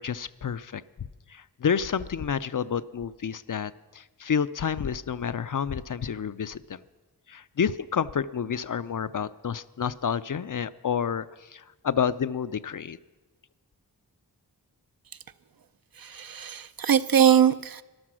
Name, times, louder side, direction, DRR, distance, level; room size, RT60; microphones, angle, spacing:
voice 1, 0.0-6.8 7.3-11.3 11.5-13.0, left 7 dB, 55° left, 14 dB, 0.5 m, -29 dB
voice 2, 16.0-17.8, right 9 dB, 60° right, 12 dB, 0.6 m, -22 dB
13.5 x 11.5 x 6.2 m, 1.2 s
wide cardioid pair, 60°, 39 cm